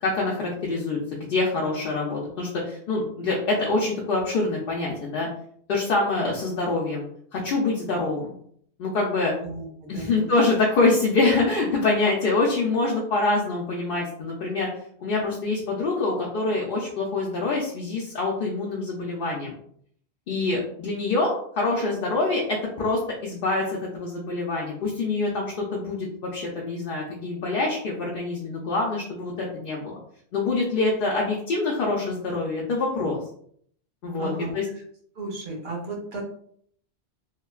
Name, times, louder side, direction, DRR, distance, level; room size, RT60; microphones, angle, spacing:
voice 1, 0.0-5.3 5.7-7.1 7.3-8.4 8.8-9.3 9.9-14.7 15.0-19.5 20.3-29.9 30.3-33.2 34.0-34.6, left 3 dB, 65° left, -3 dB, 0.7 m, -25 dB
voice 2, 9.4-10.3 34.2-34.6 35.1-36.2, right 2 dB, 70° right, -2 dB, 1.1 m, -34 dB
3.0 x 2.1 x 2.3 m, 0.63 s
omnidirectional pair, 1.1 m